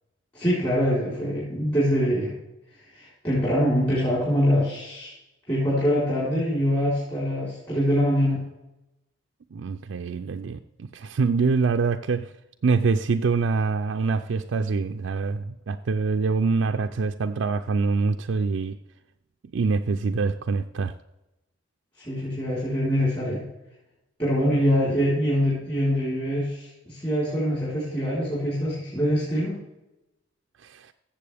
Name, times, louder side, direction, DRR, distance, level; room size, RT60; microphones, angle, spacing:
voice 1, 0.3-2.3 2.9-5.1 5.5-8.4 22.0-23.4 24.2-29.6, equal, 25° left, 4.0 m, -24 dB
voice 2, 9.5-12.3 12.6-18.8 19.5-20.9 30.6-30.9, right 4 dB, 65° right, 0.4 m, -25 dB
15.5 x 7.2 x 3.4 m
head